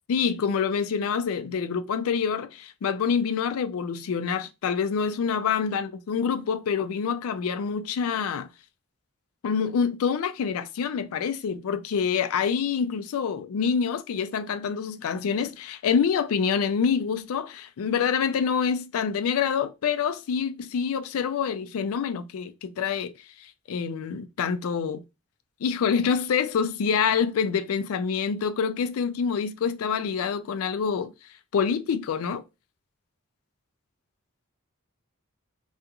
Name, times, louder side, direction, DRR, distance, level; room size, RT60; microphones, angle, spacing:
voice 1, 0.1-8.5 9.4-23.1 23.4-25.0 25.6-31.1 31.5-32.4, left 6 dB, 75° left, 0.3 m, -26 dB
2.4 x 2.3 x 2.8 m
head